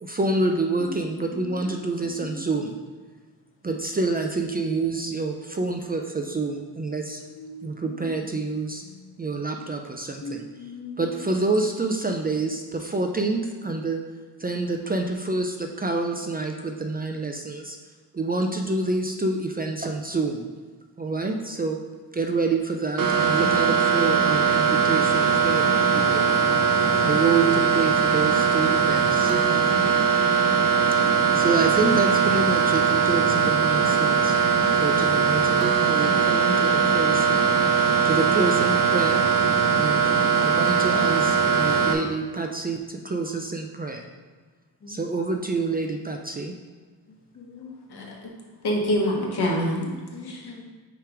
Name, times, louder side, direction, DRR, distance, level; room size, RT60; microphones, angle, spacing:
voice 1, 0.0-2.7 3.6-7.2 7.6-8.8 9.2-10.5 11.0-14.0 14.4-17.8 18.1-20.5 21.0-21.8 22.1-29.3 31.0-31.1 31.3-34.3 34.8-39.2 39.7-40.0 40.4-44.1 44.9-46.5, right 3 dB, 25° right, 3 dB, 0.4 m, -27 dB
voice 2, 0.8-2.4 7.0-8.3 8.8-9.2 10.2-11.3 29.2-30.5 35.0-35.1 40.0-40.5 44.8-45.0 47.3-48.2 49.8-50.7, left 2 dB, 35° left, 2 dB, 0.7 m, -41 dB
sound 1, 23.0-41.9, right 6 dB, 55° right, 0.7 m, -20 dB
voice 3, 47.9-48.3 48.6-49.8 50.2-50.7, equal, 70° left, -1 dB, 1.4 m, -26 dB
5.1 x 4.5 x 4.7 m, 1.4 s
wide cardioid pair, 120°, 40 cm